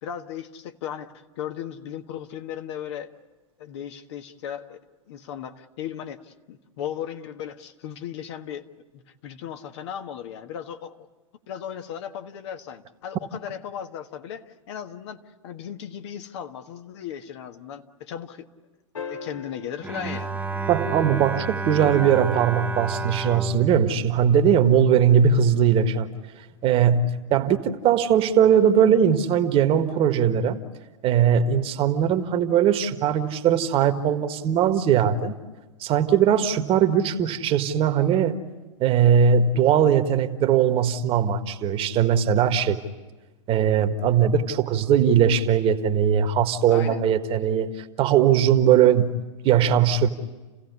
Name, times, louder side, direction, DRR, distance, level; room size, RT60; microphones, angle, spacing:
voice 1, 0.0-3.1 3.6-4.8 5.1-8.7 8.9-11.0 11.5-18.5 19.0-20.4 46.7-47.1, left 9 dB, 60° left, 1.5 m, -36 dB
sound 1, 18.9-21.5 23.7-23.8, left 5 dB, 80° left, 3.0 m, -41 dB
Bowed string instrument, 19.8-25.1, right 4 dB, 10° right, 0.9 m, -31 dB
voice 2, 20.7-26.1 26.6-30.6 31.0-35.3 35.8-38.4 38.8-42.8 43.5-49.2 49.4-50.1, right 8 dB, 35° right, 1.6 m, -20 dB
30.0 x 16.0 x 9.7 m
hypercardioid pair, 110°, 16 cm